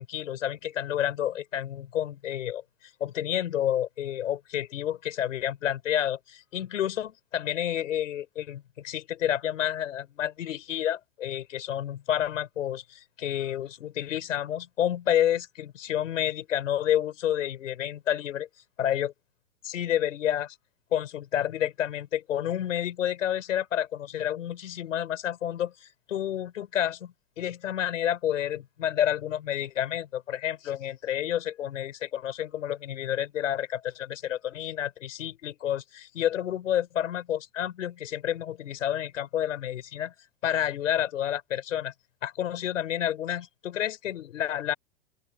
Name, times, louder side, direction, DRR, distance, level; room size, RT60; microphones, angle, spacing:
voice 1, 0.0-18.5 18.8-19.1 19.6-20.6 20.9-40.1 40.4-41.9 42.2-44.7, left 11 dB, 80° left, 6.1 m, -30 dB
open air
hypercardioid pair, 135°, 38 cm